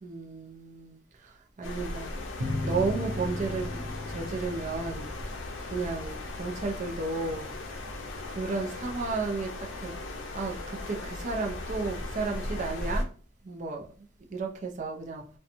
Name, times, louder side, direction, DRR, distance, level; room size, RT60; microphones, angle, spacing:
voice 1, 0.0-2.1 2.6-5.1 5.7-7.5 8.3-13.1 13.4-13.9 14.3-15.2, right 3 dB, 40° right, 0.4 m, -33 dB
sound 1, 1.6-13.0, left 2 dB, 75° left, 0.6 m, -37 dB
sound 2, 2.4-7.5, left 2 dB, 80° right, 0.7 m, -37 dB
2.8 x 2.2 x 2.5 m
head